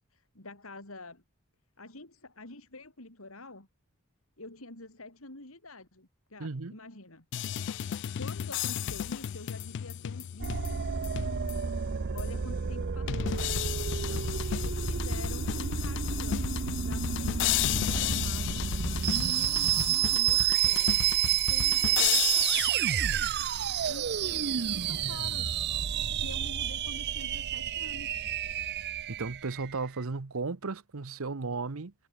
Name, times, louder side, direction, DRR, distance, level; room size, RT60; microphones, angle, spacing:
voice 1, 0.1-1.2 1.8-3.7 4.4-7.3 8.1-11.1 12.1-14.1 14.5-18.7 19.1-21.2 21.5-22.5 23.9-25.6 26.2-28.2, left 2 dB, 80° left, 5.3 m, -46 dB
voice 2, 6.4-6.8 14.0-14.4 29.1-31.9, right 4 dB, 80° right, 0.9 m, -35 dB
sound 1, 7.3-11.7 12.2-12.3 13.1-22.7, left 11 dB, 55° left, 0.3 m, -33 dB
sound 2, 10.4-29.7, right 9 dB, 50° right, 0.6 m, -30 dB
head